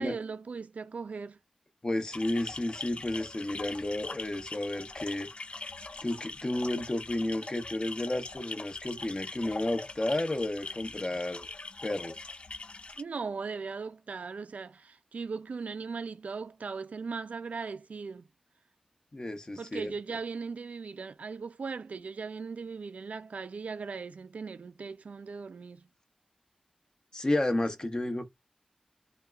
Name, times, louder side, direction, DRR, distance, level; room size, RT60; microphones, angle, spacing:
voice 1, 0.0-1.4 13.0-18.3 19.6-25.9, right 5 dB, 85° right, 0.4 m, -38 dB
voice 2, 1.8-5.3 6.0-11.5 11.8-12.2 19.1-19.9 27.1-28.3, left 1 dB, 35° left, 0.9 m, -32 dB
sound 1, 2.1-13.0, left 3 dB, 50° left, 0.4 m, -42 dB
5.2 x 2.4 x 2.4 m
wide cardioid pair, 80°, 2 cm